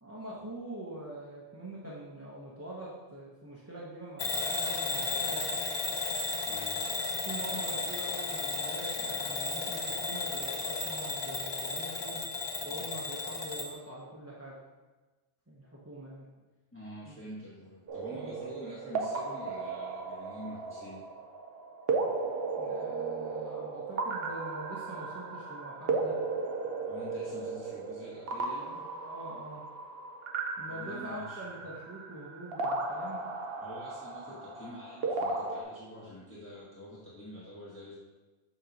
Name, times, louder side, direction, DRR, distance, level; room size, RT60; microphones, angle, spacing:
voice 1, 0.0-5.5 7.2-12.2 12.6-14.6 15.5-16.3 17.0-17.2 18.1-18.4 22.6-26.1 29.0-29.6 30.6-33.2, right 1 dB, 15° right, -6 dB, 0.8 m, -44 dB
Bell / Alarm, 4.2-13.7, left 3 dB, 45° left, 0.3 m, -34 dB
voice 2, 6.5-6.8 16.7-21.0 26.9-28.8 30.7-31.4 33.6-38.0, equal, 10° left, -9 dB, 1.2 m, -47 dB
sound 1, 17.9-35.6, right 3 dB, 65° right, 0.9 m, -35 dB
7.3 x 3.0 x 5.2 m, 1.2 s
omnidirectional pair, 1.1 m